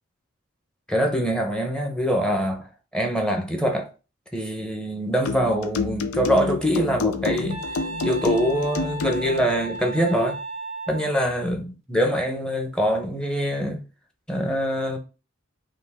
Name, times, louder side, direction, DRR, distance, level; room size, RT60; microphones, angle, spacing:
voice 1, 0.9-2.7 2.9-3.9 4.3-10.4 10.9-13.8 14.3-15.0, equal, 5° left, 0.8 m, -24 dB
sound 1, 5.3-9.5, left 4 dB, 85° left, 0.5 m, -29 dB
Wind instrument woodwind instrument, 7.5-11.1, right 1 dB, 30° right, 0.4 m, -35 dB
5.2 x 2.9 x 3.5 m
head